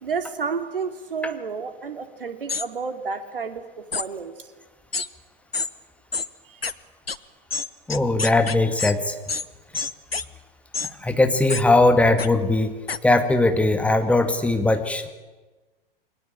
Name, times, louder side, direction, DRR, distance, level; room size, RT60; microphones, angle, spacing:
voice 1, 0.0-4.3 6.5-6.6, right 5 dB, 70° right, 7 dB, 3.1 m, -31 dB
sound 1, 2.5-2.7 3.9-4.1 4.9-5.1 5.5-5.7 6.1-6.3 6.6-6.7 7.1-7.2 7.5-8.9 9.3-9.5 9.7-10.2 10.7-10.9 11.5-11.6 12.2-12.3 12.9-13.0, left 4 dB, 85° left, 1.1 m, -27 dB
voice 2, 7.9-9.2 11.0-15.1, left 2 dB, 5° left, 7 dB, 2.1 m, -20 dB
28.5 x 22.5 x 8.9 m, 1.2 s
figure-of-eight pair, 100°, 29 cm